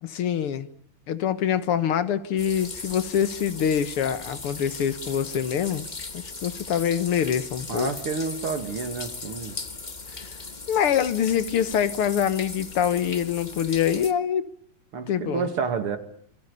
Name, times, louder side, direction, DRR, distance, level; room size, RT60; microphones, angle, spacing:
voice 1, 0.0-0.7 1.1-5.9 6.1-7.9 10.7-14.5 15.1-15.5, left 9 dB, 85° left, 2.3 m, -25 dB
sound 1, 2.4-14.1, left 3 dB, 25° left, 1.4 m, -38 dB
voice 2, 7.7-9.6 14.9-16.0, right 5 dB, 85° right, 3.2 m, -29 dB
27.5 x 23.5 x 6.9 m
omnidirectional pair, 2.4 m